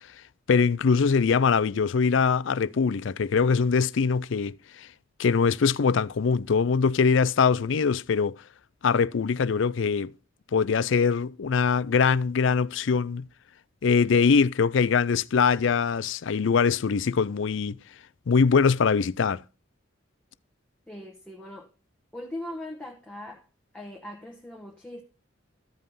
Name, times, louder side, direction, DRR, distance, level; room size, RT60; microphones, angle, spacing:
voice 1, 0.5-4.9 5.2-8.3 8.8-10.1 10.5-13.3 13.8-17.8 18.3-19.4, left 5 dB, 65° left, 0.4 m, -22 dB
voice 2, 20.9-21.7 22.1-23.4 23.7-25.0, left 1 dB, 5° left, 1.2 m, -40 dB
14.0 x 5.3 x 5.5 m
head